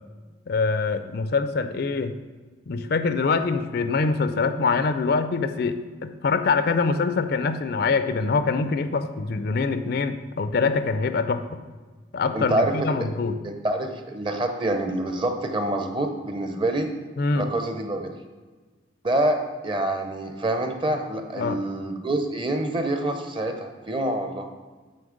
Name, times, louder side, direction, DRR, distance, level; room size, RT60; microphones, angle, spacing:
voice 1, 0.5-2.2 2.7-11.4 12.1-13.4 17.2-17.5 21.3-21.6, left 4 dB, 50° left, 10 dB, 0.4 m, -24 dB
voice 2, 12.3-13.1 13.4-16.9 17.3-18.1 19.0-19.4 19.6-24.5, right 1 dB, 25° right, 5 dB, 0.6 m, -26 dB
8.5 x 4.1 x 5.0 m, 1.4 s
head